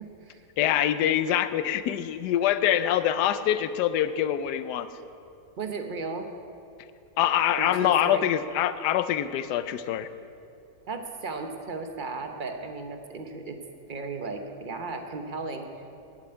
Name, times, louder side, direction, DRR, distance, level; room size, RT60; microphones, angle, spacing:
voice 1, 0.0-0.4 5.6-6.3 7.5-8.3 10.9-13.6 13.9-15.7, right 3 dB, 40° right, 5 dB, 0.8 m, -35 dB
voice 2, 0.6-4.9 7.2-10.1, left 11 dB, 75° left, 12 dB, 1.2 m, -25 dB
11.5 x 7.8 x 8.7 m, 2.6 s
omnidirectional pair, 1.8 m